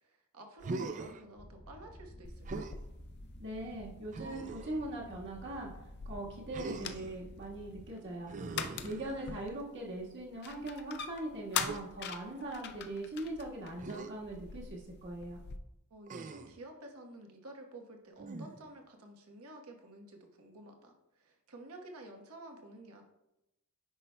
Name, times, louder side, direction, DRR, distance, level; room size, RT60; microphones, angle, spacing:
voice 1, 0.0-2.7 15.9-23.0, right 1 dB, 85° right, 2 dB, 1.1 m, -51 dB
Human voice, 0.6-1.2 2.4-2.8 4.1-4.8 6.5-7.2 8.3-9.5 11.6-11.8 13.8-14.1 16.1-16.6 18.2-18.7, right 3 dB, 35° right, 0.3 m, -42 dB
sound 1, 1.4-7.9, equal, 75° left, 2.2 m, -52 dB
sound 2, 2.2-15.6, left 7 dB, 50° left, 0.4 m, -44 dB
voice 2, 3.4-5.7 6.0-8.3 8.8-15.4, right 1 dB, 55° right, -2 dB, 1.5 m, -41 dB
9.7 x 5.6 x 2.2 m, 0.90 s
head